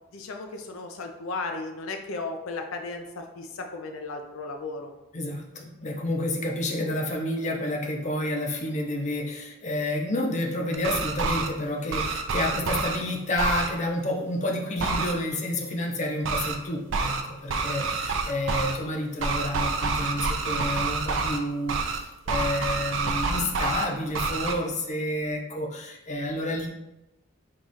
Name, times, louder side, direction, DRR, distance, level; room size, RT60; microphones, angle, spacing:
voice 1, 0.1-4.9, left 3 dB, 85° left, 4 dB, 0.5 m, -35 dB
voice 2, 5.1-26.7, left 1 dB, 35° left, 1 dB, 0.6 m, -30 dB
sound 1, 10.7-11.5 11.9-13.0 13.4-13.7 14.8-15.1 16.2-16.6 16.9-17.2 17.5-18.8 19.2-21.4 21.7-22.0 22.3-23.9 24.1-24.5, right 4 dB, 65° right, 0.5 m, -27 dB
4.7 x 2.4 x 4.0 m, 0.94 s
head